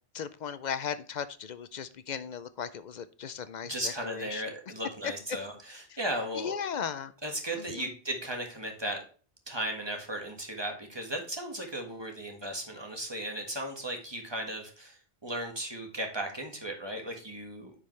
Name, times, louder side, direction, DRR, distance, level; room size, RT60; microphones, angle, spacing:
voice 1, 0.1-4.4 5.0-5.1 5.9-6.0 6.3-7.1 7.6-7.9, left 7 dB, 55° left, 0.5 m, -37 dB
voice 2, 3.6-6.5 7.2-9.0 9.5-17.7, right 1 dB, 25° right, 1.7 m, -36 dB
9.8 x 5.3 x 3.2 m
omnidirectional pair, 1.1 m